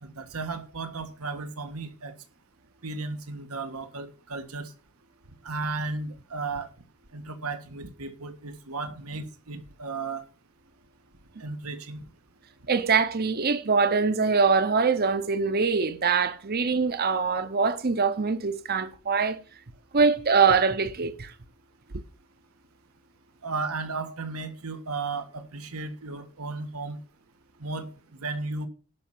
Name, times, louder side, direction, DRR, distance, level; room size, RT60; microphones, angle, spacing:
voice 1, 0.0-2.1 2.8-4.7 5.4-6.7 7.1-10.2 11.4-12.0 23.4-27.0 27.6-28.7, right 3 dB, 90° right, 1.5 m, -34 dB
voice 2, 12.7-19.4 19.9-21.3, right 5 dB, 45° right, 0.8 m, -23 dB
11.5 x 5.7 x 7.3 m
head